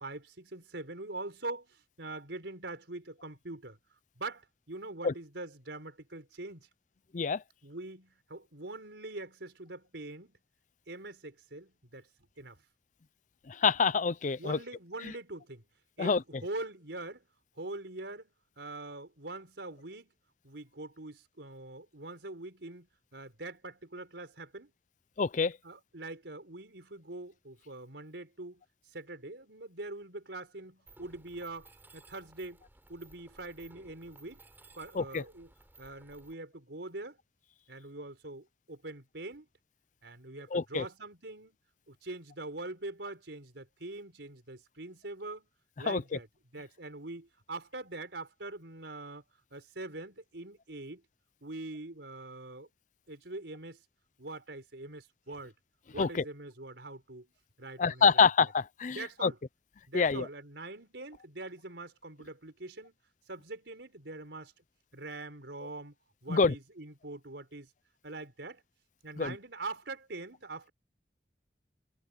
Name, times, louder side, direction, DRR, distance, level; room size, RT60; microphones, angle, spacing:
voice 1, 0.0-3.8 4.2-6.7 7.6-10.4 10.9-12.1 12.4-12.6 14.4-15.7 16.0-17.3 17.6-20.1 20.4-24.7 25.6-28.6 28.9-32.6 32.9-34.4 34.8-35.5 35.8-37.2 37.7-39.5 40.0-41.6 41.9-45.5 45.8-46.3 46.5-49.2 49.5-51.0 51.4-52.7 53.1-53.8 54.2-55.5 55.9-57.3 57.6-58.3 58.9-59.4 59.9-63.0 63.3-64.5 64.9-65.9 66.2-67.7 68.0-68.6 69.0-70.7, right 2 dB, 85° right, 4.4 m, -43 dB
voice 2, 13.5-14.6 15.0-15.1 16.0-16.2 25.2-25.6 34.9-35.2 40.5-40.9 45.9-46.2 56.0-56.2 57.8-59.3 59.9-60.3 66.3-66.5 69.2-69.3, left 5 dB, 45° left, 0.5 m, -27 dB
Mechanisms, 30.9-36.3, right 2 dB, 10° right, 3.8 m, -58 dB
head